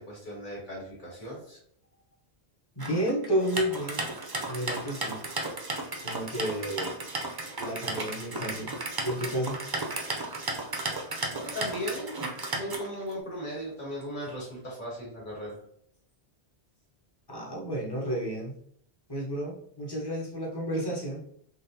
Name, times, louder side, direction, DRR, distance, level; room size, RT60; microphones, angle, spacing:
voice 1, 0.0-1.6 11.3-12.2 12.5-15.6, equal, 50° left, -4 dB, 1.8 m, -37 dB
voice 2, 2.8-4.1 4.5-5.2 6.0-6.9 7.6-8.7 9.0-9.6 17.3-18.5 19.1-21.2, equal, 25° left, -2 dB, 0.8 m, -31 dB
sound 1, 2.8-13.1, right 2 dB, 35° right, 0.4 m, -34 dB
3.8 x 3.2 x 2.7 m, 0.66 s
omnidirectional pair, 1.1 m